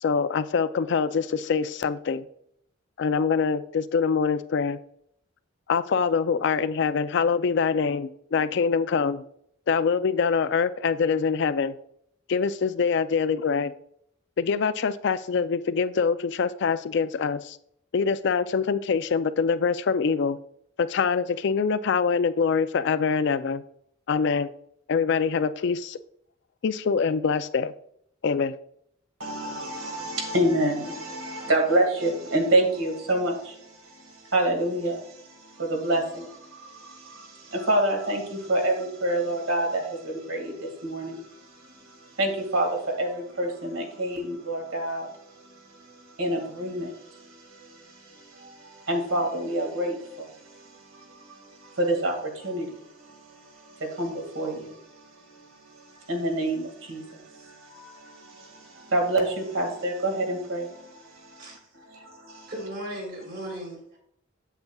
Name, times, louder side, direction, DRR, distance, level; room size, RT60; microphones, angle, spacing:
voice 1, 0.0-2.3 3.0-4.8 5.7-9.2 9.7-11.8 12.3-13.7 14.4-17.6 17.9-20.4 20.8-23.6 24.1-24.5 24.9-26.0 26.6-27.7 28.2-28.5, left 5 dB, 55° left, 14 dB, 0.4 m, -24 dB
voice 2, 29.2-45.1 45.4-62.5, right 1 dB, 75° right, 2 dB, 2.0 m, -28 dB
voice 3, 61.4-61.9 62.5-64.0, right 1 dB, 50° right, -1 dB, 3.3 m, -37 dB
8.2 x 7.9 x 2.3 m, 0.70 s
head